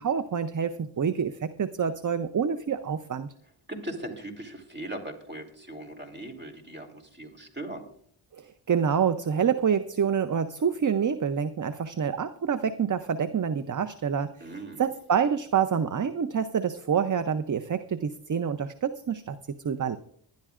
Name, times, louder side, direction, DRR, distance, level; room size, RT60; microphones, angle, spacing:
voice 1, 0.0-3.3 8.3-20.0, right 7 dB, 40° right, 11 dB, 0.6 m, -27 dB
voice 2, 3.7-7.8 14.4-14.9, right 1 dB, 20° right, 2 dB, 3.1 m, -39 dB
21.0 x 12.0 x 2.5 m, 0.63 s
wide cardioid pair, 75°, 49 cm